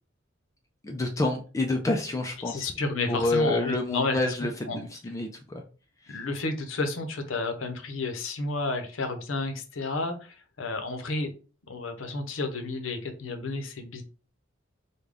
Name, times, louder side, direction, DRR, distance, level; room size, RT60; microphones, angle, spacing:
voice 1, 0.8-2.7 3.1-5.6 6.0-6.2, left 2 dB, 15° left, 3 dB, 0.3 m, -28 dB
voice 2, 2.4-4.3 4.7-4.8 6.1-11.3 11.7-14.0, left 3 dB, 80° left, 6 dB, 0.7 m, -31 dB
3.6 x 2.2 x 3.4 m, 0.37 s
head